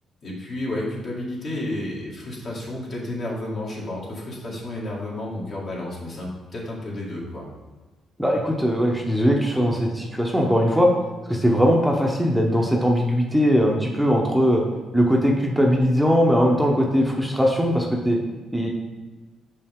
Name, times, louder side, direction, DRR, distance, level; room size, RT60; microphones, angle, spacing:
voice 1, 0.2-7.4, left 1 dB, 55° left, -4 dB, 2.1 m, -31 dB
voice 2, 8.2-10.9 11.3-14.6 14.9-18.2 18.5-18.7, equal, ahead, -1 dB, 0.8 m, -20 dB
6.1 x 5.5 x 3.6 m, 1.3 s
cardioid pair, 90°, 0 cm